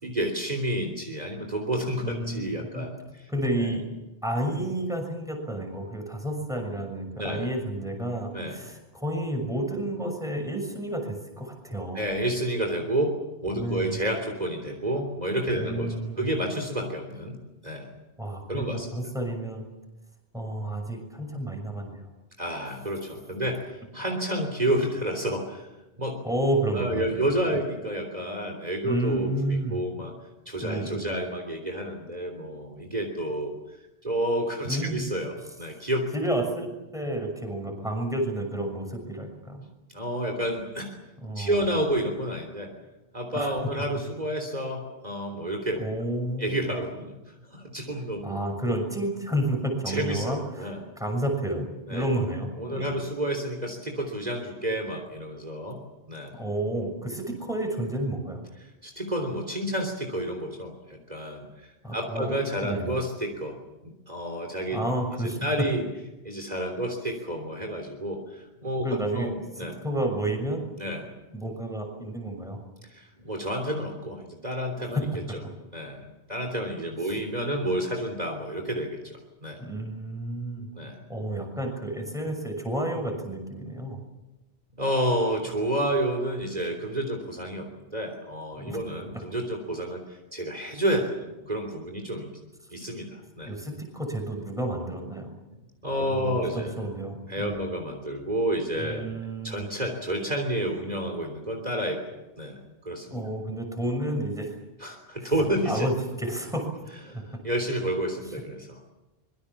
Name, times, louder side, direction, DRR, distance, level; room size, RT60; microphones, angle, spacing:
voice 1, 0.0-3.3 3.6-3.7 7.2-7.5 8.3-8.6 11.9-13.2 13.4-17.4 17.6-17.9 18.5-18.9 22.4-25.7 26.0-26.2 26.7-30.1 30.5-33.5 34.0-36.1 39.9-40.9 41.4-42.7 43.1-45.8 46.4-47.2 47.5-48.4 49.9-50.9 51.9-52.1 52.6-55.8 56.1-56.3 58.8-63.6 63.8-64.8 65.1-65.9 66.2-68.9 69.1-69.8 70.8-71.1 72.8-75.1 75.7-76.0 76.3-79.6 80.7-81.0 84.8-92.3 92.7-93.5 95.8-96.8 97.3-99.1 99.4-102.0 102.4-102.6 102.9-103.1 104.8-105.9 107.1-108.9, right 1 dB, 40° right, 3 dB, 3.6 m, -30 dB
voice 2, 2.0-2.4 2.7-2.9 3.3-3.8 4.2-12.1 13.5-13.9 15.6-16.2 18.2-19.6 20.3-22.0 26.2-27.1 28.8-29.8 30.6-31.1 34.7-35.1 36.1-39.6 41.2-41.6 43.3-43.5 45.8-46.6 48.2-53.0 56.4-58.4 61.8-62.3 62.6-62.9 64.7-65.4 68.8-70.7 71.3-72.6 77.1-77.2 79.6-80.7 81.1-84.0 88.6-88.8 93.5-95.3 96.0-97.6 98.8-99.7 103.1-104.6 105.2-105.3 105.6-106.7 107.1-107.2 108.3-108.4, right 1 dB, 5° right, 3 dB, 6.3 m, -31 dB
25.5 x 23.0 x 7.2 m, 1.0 s
omnidirectional pair, 1.1 m